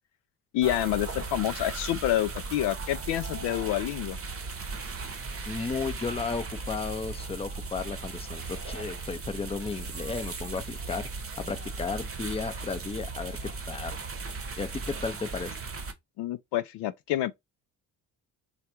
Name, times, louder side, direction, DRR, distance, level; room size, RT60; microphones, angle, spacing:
voice 1, 0.5-4.2 16.2-17.4, left 13 dB, 60° left, 0.5 m, -28 dB
sound 1, 0.6-15.9, right 4 dB, 25° right, 0.9 m, -37 dB
voice 2, 5.5-11.1 11.5-14.0 14.6-15.6, left 5 dB, 10° left, 0.6 m, -34 dB
3.3 x 2.4 x 4.2 m
hypercardioid pair, 45°, 49 cm